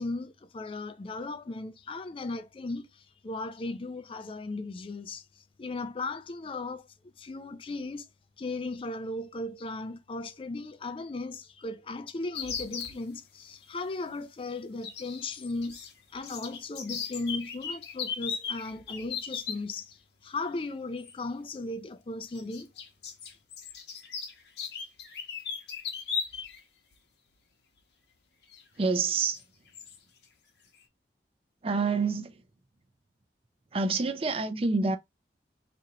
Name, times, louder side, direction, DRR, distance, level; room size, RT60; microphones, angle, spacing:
voice 1, 0.0-8.1 8.4-15.8 16.1-22.7 23.2-23.4, left 2 dB, 30° left, 0.4 m, -37 dB
sound 1, 12.3-12.9 14.8-15.9 16.2-19.6 21.0-21.1 22.3-26.6 26.9-27.0 28.5-28.6 29.2-29.4 29.7-30.0, left 6 dB, 70° left, 0.8 m, -37 dB
voice 2, 28.8-29.4 31.6-32.4 33.7-35.0, right 4 dB, 35° right, 0.5 m, -27 dB
2.8 x 2.6 x 4.1 m
head